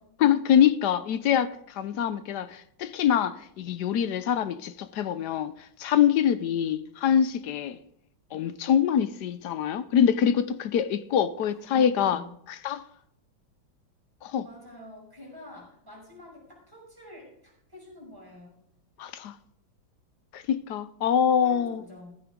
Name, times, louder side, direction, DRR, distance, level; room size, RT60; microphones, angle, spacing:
voice 1, 0.2-1.5 1.7-5.5 5.8-7.8 8.3-12.2 12.6-12.8 14.2-14.4 19.0-19.3 20.3-21.8, left 9 dB, 70° left, 1.1 m, -24 dB
voice 2, 11.4-12.4 14.4-18.5 21.4-22.2, left 1 dB, 10° right, 5.9 m, -48 dB
15.0 x 12.5 x 3.7 m
omnidirectional pair, 2.2 m